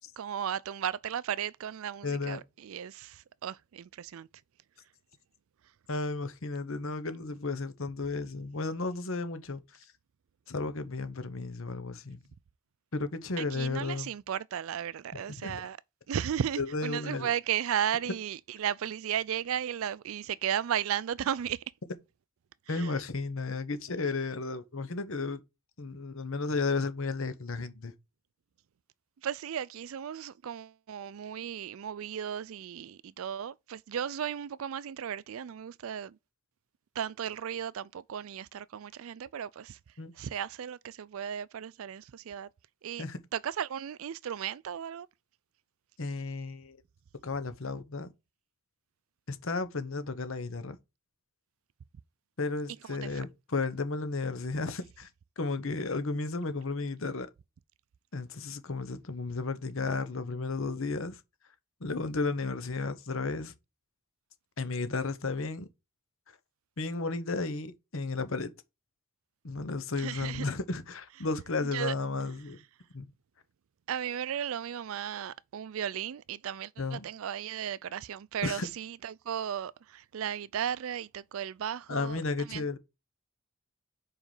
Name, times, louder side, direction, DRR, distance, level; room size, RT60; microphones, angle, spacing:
voice 1, 0.2-4.3 13.4-15.8 16.1-21.6 22.7-23.0 29.2-36.2 37.0-39.8 40.1-42.5 42.8-43.0 43.3-45.1 52.8-53.2 70.0-70.6 71.6-71.9 73.9-82.7, right 9 dB, 70° right, 0.4 m, -35 dB
voice 2, 2.0-2.4 5.9-9.6 10.5-12.2 12.9-14.1 15.1-15.6 16.6-17.3 22.7-25.4 25.8-27.9 40.0-40.1 43.0-43.2 46.0-46.8 47.2-48.1 49.3-50.8 52.4-55.1 55.4-57.3 58.1-61.2 61.8-63.5 64.6-65.7 66.8-68.5 69.4-72.6 72.9-73.1 76.8-77.1 78.4-78.7 81.9-82.8, left 3 dB, 65° left, 1.0 m, -33 dB
5.1 x 4.8 x 5.4 m
head